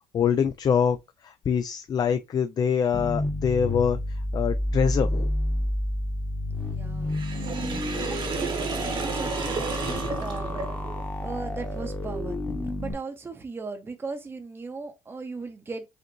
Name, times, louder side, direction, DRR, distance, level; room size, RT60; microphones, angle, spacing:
voice 1, 0.1-1.0 1.2-4.0 4.3-5.3, left 7 dB, 40° left, 0.4 m, -24 dB
sound 1, 2.9-12.9, left 1 dB, 20° left, 1.0 m, -30 dB
voice 2, 6.5-7.2 8.1-10.7 11.2-12.4 12.8-15.9, right 4 dB, 20° right, 0.8 m, -38 dB
Sink (filling or washing), 7.1-11.1, right 5 dB, 50° right, 1.2 m, -32 dB
5.1 x 2.5 x 3.0 m
supercardioid pair, 85°, 10 cm